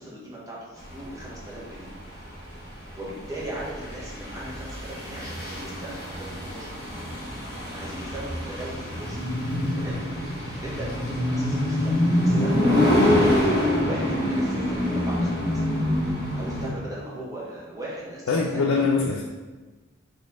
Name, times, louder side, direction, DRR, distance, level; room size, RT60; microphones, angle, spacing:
voice 1, 0.0-1.9 2.9-7.0 7.6-9.2 9.7-10.0 10.5-15.7 16.3-18.8, right 1 dB, 15° right, -6 dB, 1.0 m, -38 dB
sound 1, 0.8-16.7, left 1 dB, 50° left, 1.3 m, -25 dB
voice 2, 18.3-19.2, left 4 dB, 85° left, 0 dB, 0.4 m, -23 dB
4.1 x 3.1 x 3.5 m, 1.3 s
head